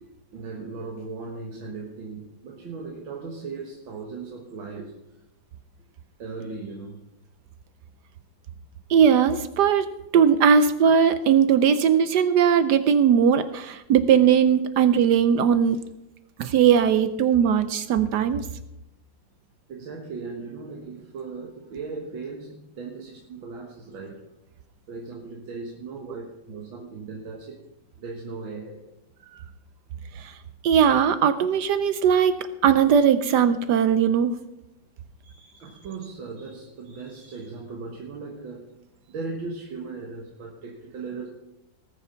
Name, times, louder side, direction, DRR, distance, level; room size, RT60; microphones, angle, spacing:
voice 1, 0.0-4.9 6.2-7.0 15.7-15.8 19.7-24.2 24.9-27.6 28.0-28.8 35.2-38.7 39.1-41.3, right 4 dB, 90° right, 0 dB, 2.2 m, -37 dB
voice 2, 8.9-9.9 10.1-15.8 16.4-18.5 30.2-30.3 30.6-34.3, right 7 dB, 70° right, 12 dB, 1.1 m, -19 dB
19.0 x 7.0 x 5.7 m, 0.90 s
omnidirectional pair, 2.1 m